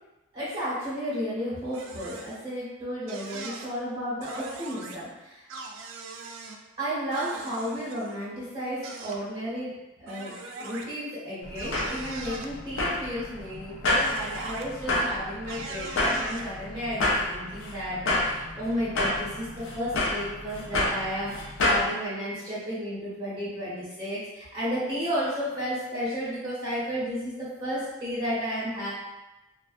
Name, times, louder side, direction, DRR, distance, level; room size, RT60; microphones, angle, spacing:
voice 1, 0.3-5.5 6.8-19.5 19.7-28.9, equal, 25° right, -12 dB, 0.9 m, -33 dB
sound 1, 1.7-2.4 3.1-3.7 4.2-5.0 5.5-6.6 7.1-8.2 8.8-9.2 10.1-10.9 11.6-12.5 13.9-14.6 15.5-16.5, right 3 dB, 80° right, 0.3 m, -40 dB
sound 2, 11.4-21.9, left 2 dB, 75° left, 0.5 m, -29 dB
2.4 x 2.3 x 2.4 m, 1.0 s
head